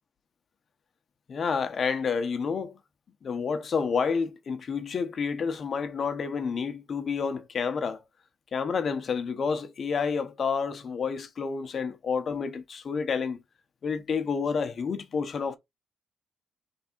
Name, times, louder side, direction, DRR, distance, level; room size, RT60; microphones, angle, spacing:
voice 1, 1.3-2.8 3.2-8.0 8.5-13.4 13.8-15.6, left 5 dB, 50° left, 0.8 m, -29 dB
3.5 x 3.3 x 4.4 m
cardioid pair, 90°, 0 cm